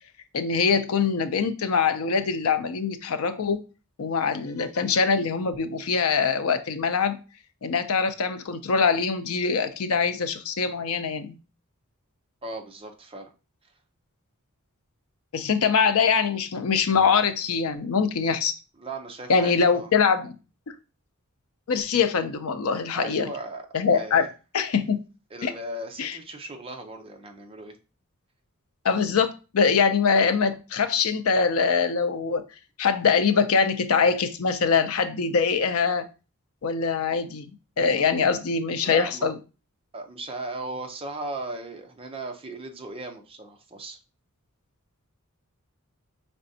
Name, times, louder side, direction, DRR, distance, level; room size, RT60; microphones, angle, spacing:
voice 1, 0.3-3.6 4.0-7.2 7.6-11.4 15.3-18.5 19.3-20.3 21.7-23.3 23.7-24.3 24.5-25.0 25.4-25.5 26.0-26.2 28.8-32.4 32.8-36.1 36.6-39.4, left 5 dB, 70° left, 0.5 m, -23 dB
voice 2, 12.4-13.3 18.8-19.9 22.9-23.6 23.9-24.3 25.3-27.8 38.0-38.1 38.8-39.3 39.9-44.0, right 2 dB, 25° right, 0.6 m, -37 dB
5.1 x 3.3 x 2.7 m
head